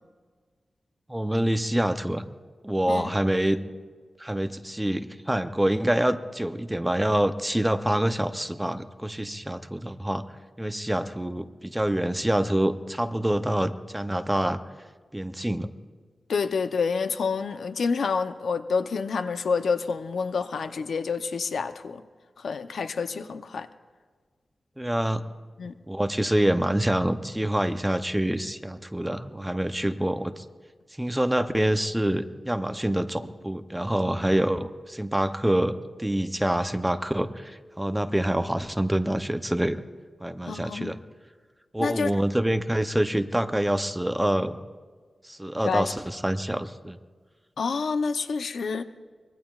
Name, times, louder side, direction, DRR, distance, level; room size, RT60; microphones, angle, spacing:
voice 1, 1.1-2.2 2.6-3.6 4.2-10.2 10.6-14.6 15.1-15.7 24.8-25.2 25.9-30.4 31.0-39.8 40.2-41.0 41.7-44.6 45.2-47.0, right 1 dB, 5° right, 9 dB, 0.6 m, -26 dB
voice 2, 16.3-22.0 22.4-23.7 25.6-25.7 40.5-40.9 41.8-42.1 45.6-45.9 47.6-48.8, left 5 dB, 90° left, 9 dB, 0.6 m, -28 dB
24.5 x 21.0 x 2.4 m, 1.5 s
wide cardioid pair, 135°, 0 cm